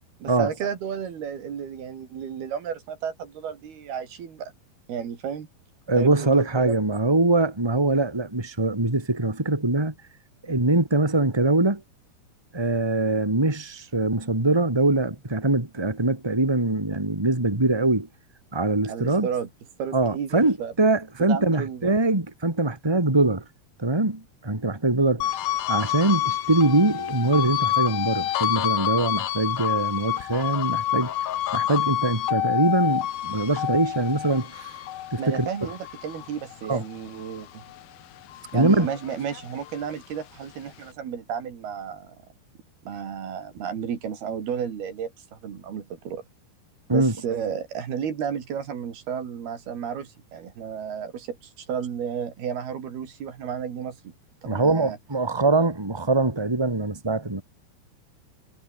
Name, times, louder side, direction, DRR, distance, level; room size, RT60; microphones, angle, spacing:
voice 1, 0.2-4.5 4.9-5.5 6.0-6.7 18.9-19.5 19.8-20.7 21.2-21.9 35.2-37.6 38.5-42.2 42.9-46.2 46.9-54.1 54.4-55.0, right 8 dB, 70° right, 4.9 m, -32 dB
voice 2, 5.9-9.9 10.4-11.8 12.5-18.1 18.5-19.3 19.9-23.4 23.8-25.3 25.7-31.1 31.5-34.8 35.1-35.7 36.7-36.8 38.5-38.9 46.9-47.1 54.4-57.4, right 2 dB, 5° right, 3.3 m, -23 dB
sound 1, 25.2-37.8 38.2-39.9, left 12 dB, 70° left, 3.2 m, -28 dB
omnidirectional pair, 4.6 m